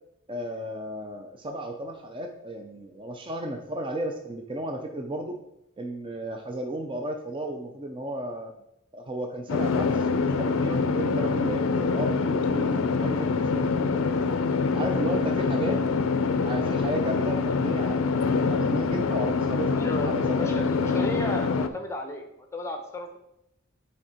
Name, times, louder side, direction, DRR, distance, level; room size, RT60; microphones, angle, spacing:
voice 1, 0.3-5.4 5.8-8.5 8.9-14.1 14.7-15.8 16.4-21.1, right 1 dB, 25° right, 3 dB, 0.5 m, -34 dB
sound 1, 9.5-21.7, left 4 dB, 70° left, 0.4 m, -25 dB
voice 2, 19.8-23.2, left 1 dB, 15° left, 4 dB, 0.8 m, -34 dB
6.3 x 4.5 x 4.3 m, 0.80 s
head